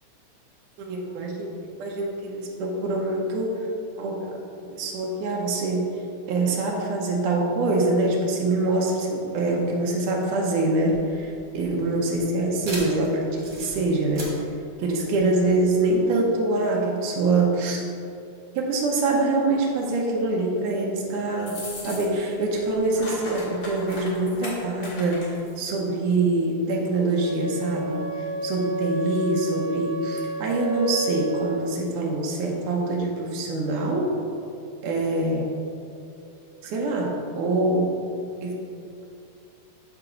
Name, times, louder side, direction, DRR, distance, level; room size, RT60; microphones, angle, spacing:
voice 1, 0.8-3.6 4.0-5.8 6.3-14.2 14.8-17.8 18.6-21.6 21.8-25.3 25.6-34.1 34.8-35.5 36.6-37.9 38.4-38.5, right 2 dB, 85° right, -1 dB, 2.2 m, -24 dB
sound 1, 10.8-15.9, right 1 dB, 35° right, 1.5 m, -40 dB
sound 2, 21.4-22.3 22.6-25.5, left 2 dB, 50° left, 2.5 m, -38 dB
Wind instrument woodwind instrument, 27.1-31.6, right 2 dB, 70° left, 2.4 m, -31 dB
6.7 x 6.0 x 3.8 m, 2.7 s
omnidirectional pair, 3.5 m